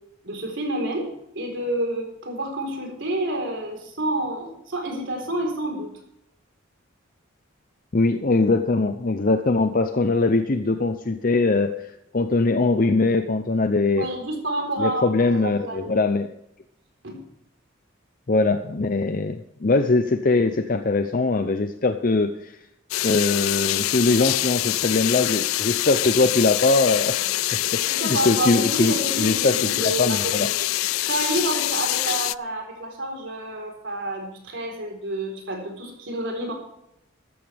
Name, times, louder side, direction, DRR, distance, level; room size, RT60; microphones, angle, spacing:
voice 1, 0.2-1.1 1.3-5.9 14.0-15.9 17.0-17.2 27.9-30.7 31.0-36.5, right 1 dB, 65° right, 2 dB, 4.1 m, -29 dB
voice 2, 7.9-11.9 12.1-14.1 14.8-16.3 18.3-22.6 23.0-27.3 27.7-30.5, left 3 dB, 40° left, 8 dB, 0.6 m, -21 dB
sound 1, 22.9-32.4, left 16 dB, 90° left, 0.4 m, -25 dB
14.0 x 13.5 x 3.5 m, 0.80 s
head